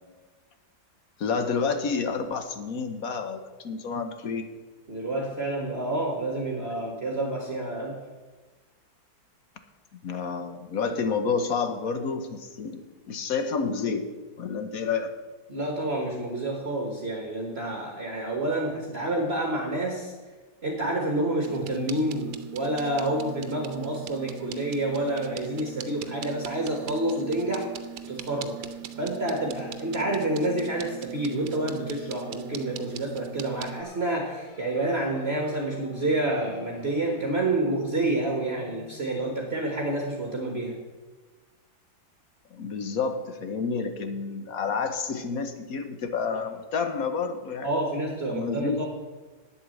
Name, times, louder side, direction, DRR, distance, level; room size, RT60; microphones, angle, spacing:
voice 1, 1.2-4.4 10.0-14.0 14.4-15.1 42.5-47.7 48.3-48.9, left 5 dB, 55° left, 8 dB, 1.2 m, -29 dB
voice 2, 4.9-8.0 15.5-20.1 20.6-27.7 28.1-28.6 29.0-40.8 47.6-48.9, right 1 dB, 35° right, 1 dB, 1.5 m, -28 dB
sound 1, 21.4-33.8, right 10 dB, 85° right, 1.4 m, -41 dB
sound 2, 33.5-39.5, left 1 dB, 85° left, 2.4 m, -50 dB
9.0 x 8.2 x 7.7 m, 1.3 s
omnidirectional pair, 2.0 m